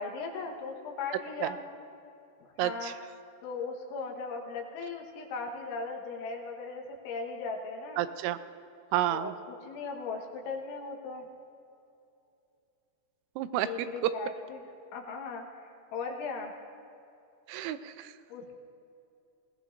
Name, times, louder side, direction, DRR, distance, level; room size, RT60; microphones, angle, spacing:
voice 1, 0.0-1.6 2.6-2.9 3.4-8.0 9.1-11.3 13.6-14.6 14.9-16.5 18.3-18.5, left 4 dB, 80° left, 1 dB, 3.7 m, -38 dB
voice 2, 2.6-2.9 8.0-8.4 8.9-9.3 13.4-13.7 17.5-18.1, right 13 dB, 85° right, 12 dB, 3.0 m, -30 dB
21.0 x 18.0 x 2.6 m, 2.7 s
omnidirectional pair, 5.4 m